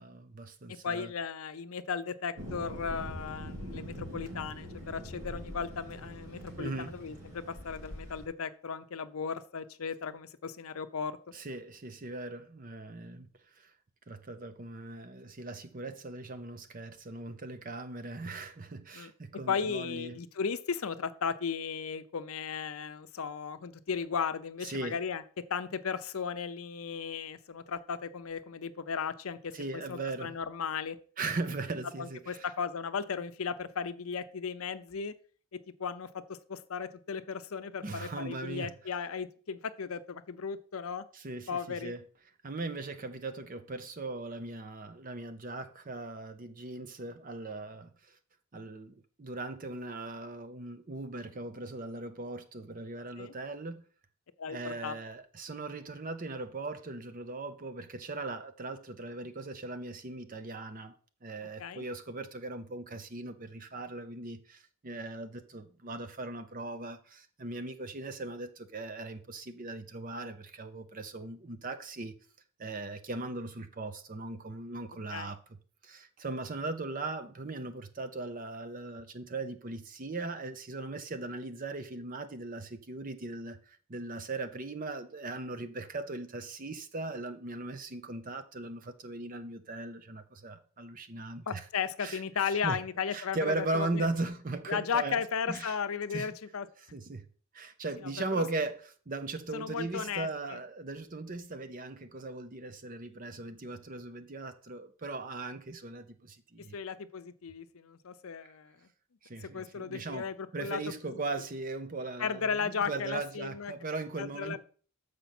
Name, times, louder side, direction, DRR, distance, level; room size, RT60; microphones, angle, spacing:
voice 1, 0.0-1.1 6.6-7.0 11.3-13.3 13.6-13.7 14.1-20.2 24.6-25.0 29.5-30.3 31.2-32.5 37.8-38.7 41.1-42.0 42.4-48.2 48.5-53.8 54.5-60.9 61.2-72.2 72.6-75.6 75.8-91.6 92.0-92.8 93.1-95.2 95.5-95.7 96.1-96.3 96.9-97.3 97.5-106.8 109.2-114.6, right 2 dB, 40° right, 0.7 m, -39 dB
voice 2, 0.8-11.2 18.9-19.1 19.5-25.2 25.5-29.5 29.9-31.0 32.0-35.1 35.8-41.0 41.5-41.9 53.2-53.3 54.4-54.9 61.6-61.9 75.1-75.3 91.5-94.1 94.7-96.7 98.3-98.4 99.5-100.6 106.7-108.7 109.4-110.8 111.1-111.2 112.2-113.7 114.2-114.6, left 6 dB, 75° left, 0.6 m, -35 dB
Thunder, 2.4-8.3, equal, 85° right, 2.7 m, -43 dB
6.9 x 5.1 x 5.9 m
head